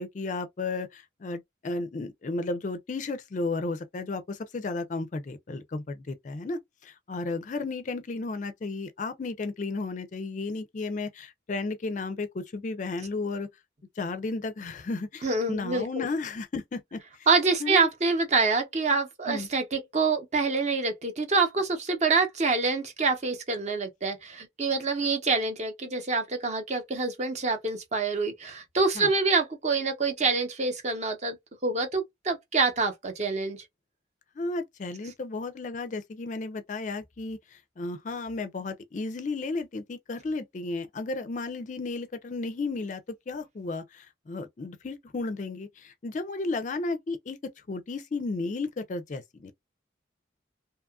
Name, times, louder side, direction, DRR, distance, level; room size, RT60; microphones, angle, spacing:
voice 1, 0.0-13.5 14.0-17.3 17.6-17.9 19.3-19.5 29.0-29.1 34.4-49.5, left 3 dB, 40° left, 0.4 m, -33 dB
voice 2, 15.2-16.0 17.3-31.4 31.6-33.6, right 4 dB, 35° right, 0.7 m, -26 dB
2.8 x 2.3 x 2.3 m
head